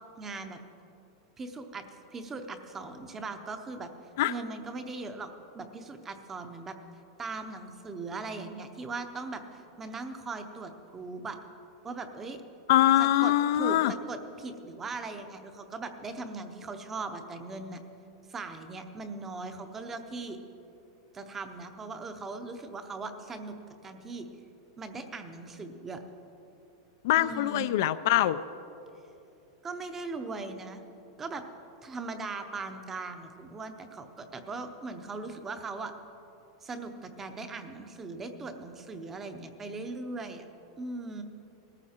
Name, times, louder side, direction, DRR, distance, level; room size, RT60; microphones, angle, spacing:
voice 1, 0.2-0.6 1.4-3.9 4.3-5.3 5.5-6.8 7.2-11.4 11.8-12.4 13.2-17.8 18.3-20.4 21.1-23.6 23.8-24.3 24.8-26.0 27.2-27.7 29.6-30.8 31.2-31.5 31.8-35.9 36.6-40.5 40.8-41.2, right 3 dB, 10° right, 7 dB, 0.7 m, -39 dB
voice 2, 12.7-13.9 27.0-28.4, left 13 dB, 50° left, 13 dB, 0.4 m, -23 dB
20.0 x 14.0 x 4.4 m, 3.0 s
supercardioid pair, 180°, 2 cm